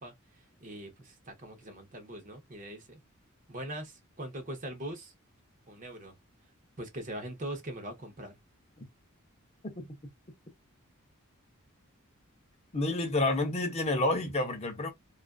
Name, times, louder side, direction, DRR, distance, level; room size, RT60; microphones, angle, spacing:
voice 1, 0.0-3.0 3.5-5.1 5.7-6.2 6.8-8.4, right 1 dB, 35° right, 0.7 m, -42 dB
voice 2, 12.7-14.9, left 2 dB, 30° left, 0.6 m, -29 dB
2.4 x 2.3 x 2.2 m
head